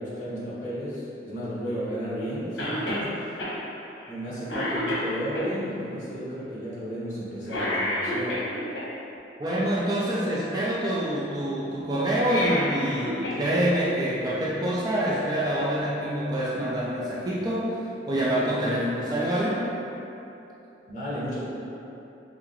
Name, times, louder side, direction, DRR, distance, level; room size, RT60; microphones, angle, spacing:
voice 1, 0.0-3.5 4.1-8.4 20.9-21.4, equal, 45° left, -9 dB, 1.2 m, -33 dB
Cough, 2.6-3.1 3.4-3.5 4.0-4.2 4.5-5.5 7.5-8.8 12.1-13.4 13.7-13.8 14.9-15.0, left 1 dB, 75° left, 1.0 m, -29 dB
voice 2, 9.4-17.8 18.1-19.6, right 1 dB, 20° right, -6 dB, 0.4 m, -26 dB
5.7 x 2.1 x 2.9 m, 2.9 s
head